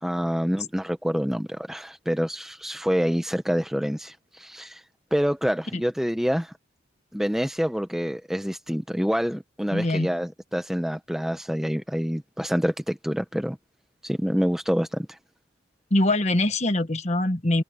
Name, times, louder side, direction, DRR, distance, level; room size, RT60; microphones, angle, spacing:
voice 1, 0.0-4.8 5.1-6.5 7.1-13.6 14.0-15.2, equal, ahead, 0.9 m, -27 dB
voice 2, 9.7-10.1 15.9-17.6, left 1 dB, 35° left, 1.4 m, -23 dB
head